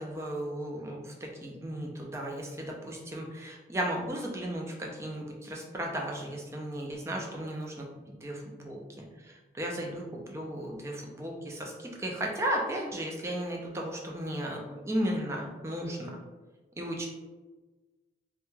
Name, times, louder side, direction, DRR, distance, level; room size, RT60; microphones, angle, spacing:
voice 1, 0.0-7.9 8.2-16.2 16.8-17.1, right 1 dB, 15° right, -1 dB, 0.3 m, -35 dB
2.2 x 2.1 x 3.1 m, 1.2 s
head